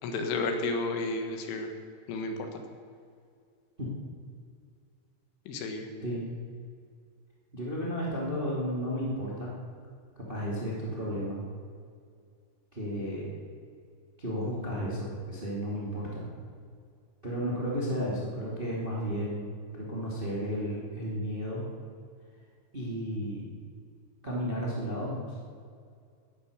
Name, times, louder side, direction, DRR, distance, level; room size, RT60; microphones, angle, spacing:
voice 1, 0.0-1.7 2.1-2.5 5.5-5.9, left 3 dB, 70° left, 5 dB, 3.8 m, -32 dB
voice 2, 7.5-9.5 10.1-11.4 12.7-13.3 14.2-16.3 17.2-21.6 22.7-23.5 24.2-25.4, equal, 85° right, -4 dB, 0.4 m, -33 dB
15.0 x 10.5 x 6.7 m, 2.2 s
omnidirectional pair, 6.0 m